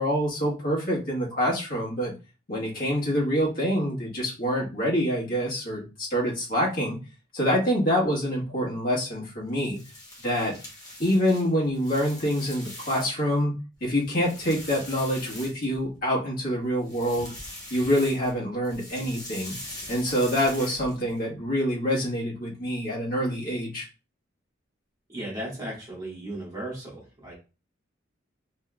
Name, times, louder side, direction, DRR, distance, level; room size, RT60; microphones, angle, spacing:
voice 1, 0.0-2.1 2.5-7.0 7.3-9.8 10.2-10.5 11.0-13.5 13.8-17.3 17.7-19.5 19.9-23.9, equal, 50° left, -5 dB, 1.5 m, -26 dB
sound 1, 9.5-13.3 13.7-16.0 16.7-18.4 18.6-21.2, left 1 dB, 20° left, 1.0 m, -42 dB
voice 2, 25.1-27.3, right 1 dB, 20° right, -5 dB, 1.7 m, -36 dB
3.6 x 3.1 x 2.3 m, 0.31 s
head